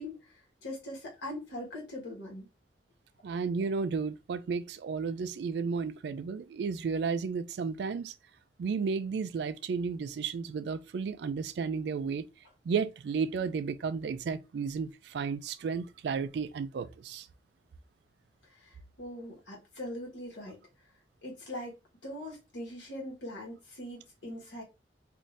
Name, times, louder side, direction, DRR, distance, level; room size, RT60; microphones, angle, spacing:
voice 1, 0.0-2.5 18.5-20.6 21.2-21.8 22.0-24.6, left 1 dB, 85° left, 1.3 m, -41 dB
voice 2, 3.2-8.1 8.6-12.3 12.7-17.3, right 5 dB, 70° right, 0.3 m, -33 dB
3.6 x 2.6 x 2.5 m
head